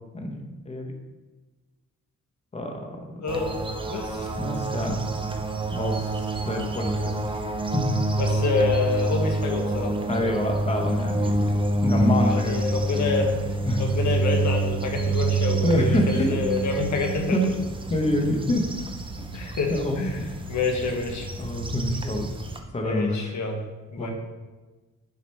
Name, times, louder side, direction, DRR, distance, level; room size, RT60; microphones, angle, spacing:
voice 1, 0.1-0.9 2.5-3.0 4.4-5.0 5.7-7.1 7.7-7.8 10.1-11.5 11.8-12.5 13.6-13.8 15.6-16.4 17.3-17.4 17.9-18.6 19.7-20.1 21.4-22.3 22.7-23.3 24.0-24.1, left 1 dB, 20° left, 2 dB, 1.0 m, -26 dB
voice 2, 3.2-3.5 3.9-4.3 8.2-10.0 12.2-13.4 13.8-17.5 19.3-21.3 22.8-23.6 23.9-24.1, left 4 dB, 65° left, 2 dB, 1.3 m, -27 dB
sound 1, 3.3-22.6, right 2 dB, 15° right, 0.6 m, -27 dB
6.7 x 5.0 x 5.5 m, 1.2 s
wide cardioid pair, 165°, 31 cm